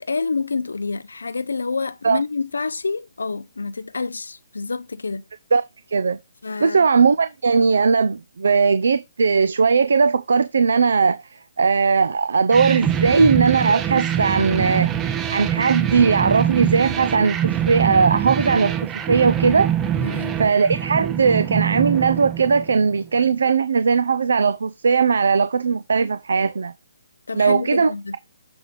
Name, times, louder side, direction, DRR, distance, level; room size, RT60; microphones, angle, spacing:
voice 1, 0.0-5.2 6.4-6.8 20.0-20.4 27.3-28.2, left 4 dB, 90° left, 0.5 m, -27 dB
voice 2, 6.6-19.7 20.4-26.7 27.3-27.9, right 5 dB, 75° right, 0.5 m, -19 dB
sound 1, 12.5-23.0, right 9 dB, 15° right, 0.5 m, -24 dB
6.9 x 3.6 x 5.0 m
hypercardioid pair, 155°, 0 cm